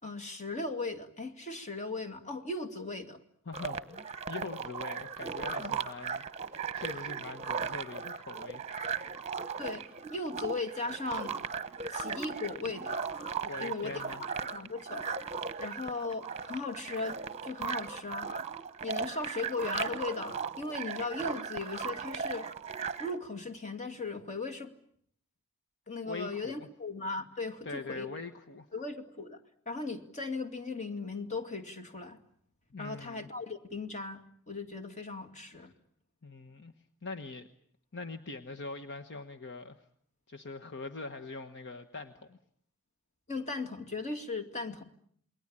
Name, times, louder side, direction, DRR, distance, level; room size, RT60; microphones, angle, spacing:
voice 1, 0.0-3.2 5.6-5.8 9.6-11.4 11.9-13.0 13.6-14.0 14.5-15.1 15.6-18.3 18.8-22.5 23.0-24.7 25.9-28.1 28.7-29.4 29.7-32.2 32.8-35.7 43.3-44.8, left 3 dB, 35° left, 6 dB, 2.3 m, -37 dB
voice 2, 3.4-8.7 13.4-14.2 26.0-26.7 27.6-28.7 32.7-33.3 36.2-36.7 37.0-37.5 37.9-39.9 40.3-42.4, left 3 dB, 55° left, 8 dB, 1.3 m, -43 dB
sound 1, 3.5-23.2, right 5 dB, 30° right, 1.1 m, -37 dB
28.5 x 22.0 x 8.8 m, 0.65 s
head